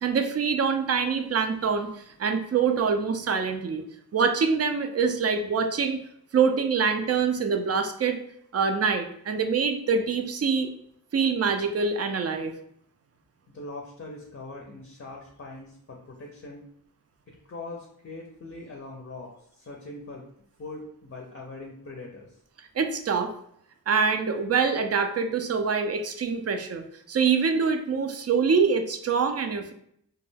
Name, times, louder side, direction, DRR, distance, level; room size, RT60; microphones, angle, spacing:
voice 1, 0.0-3.8 4.1-6.0 6.3-8.2 8.5-10.7 11.1-12.5 22.8-23.3 23.9-29.7, right 5 dB, 45° right, 6 dB, 0.4 m, -25 dB
voice 2, 13.5-16.7 17.3-20.3 20.6-22.3, left 2 dB, 35° left, 0 dB, 0.5 m, -41 dB
2.2 x 2.1 x 3.2 m, 0.70 s
cardioid pair, 55°, 37 cm